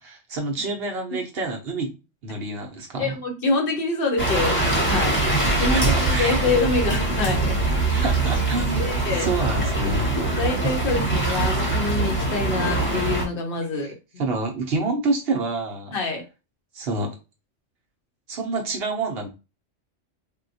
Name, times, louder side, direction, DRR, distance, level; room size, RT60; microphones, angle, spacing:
voice 1, 0.0-1.9 2.2-3.2 5.7-6.4 7.7-8.8 9.1-10.2 13.6-13.9 14.2-15.9 16.7-17.2 18.3-19.3, right 3 dB, 60° right, 0.8 m, -28 dB
voice 2, 3.0-5.2 5.6-7.6 7.9-8.0 8.3-8.4 8.8-9.3 10.4-13.9 15.9-16.2, left 3 dB, 55° left, 0.8 m, -26 dB
sound 1, 4.2-13.3, right 2 dB, 10° left, 0.8 m, -23 dB
3.5 x 2.2 x 2.6 m
omnidirectional pair, 1.3 m